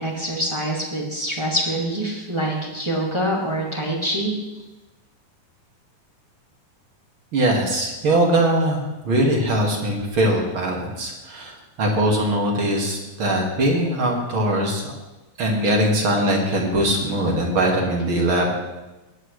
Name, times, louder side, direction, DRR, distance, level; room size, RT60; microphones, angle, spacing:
voice 1, 0.0-4.3, right 1 dB, 10° right, -4 dB, 1.3 m, -25 dB
voice 2, 7.3-14.9 15.4-18.5, right 1 dB, 40° right, 0 dB, 2.3 m, -21 dB
21.0 x 10.5 x 3.3 m, 1.1 s
omnidirectional pair, 4.3 m